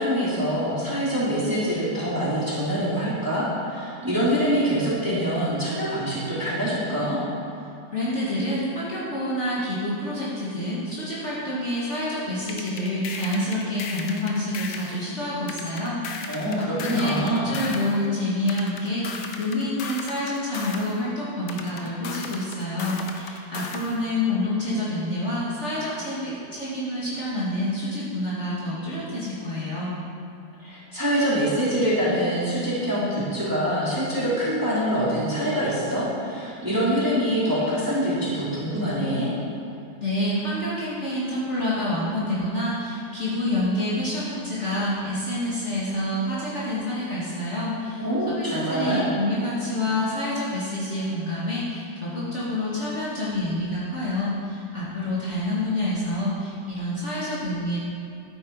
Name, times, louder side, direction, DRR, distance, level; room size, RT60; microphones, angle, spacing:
voice 1, 0.0-7.2 16.3-17.5 30.6-39.3 48.0-49.0, equal, 10° right, -9 dB, 3.1 m, -25 dB
voice 2, 7.9-29.9 40.0-57.8, left 1 dB, 40° left, -8 dB, 2.2 m, -28 dB
sound 1, 12.5-15.0 15.5-17.9 18.5-20.9 21.5-23.9, left 5 dB, 70° left, 1.5 m, -36 dB
12.0 x 9.4 x 4.7 m, 2.6 s
omnidirectional pair, 1.9 m